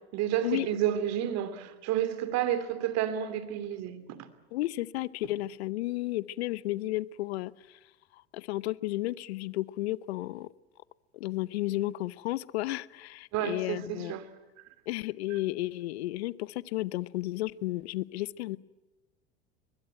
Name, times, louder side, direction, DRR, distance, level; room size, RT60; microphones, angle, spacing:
voice 1, 0.1-4.3 13.3-14.3 15.3-15.4, right 11 dB, 55° right, 2.9 m, -30 dB
voice 2, 4.5-7.8 8.1-10.5 11.1-14.1 14.9-18.6, left 17 dB, 75° left, 0.8 m, -33 dB
22.5 x 21.5 x 9.0 m
hypercardioid pair, 85°, 33 cm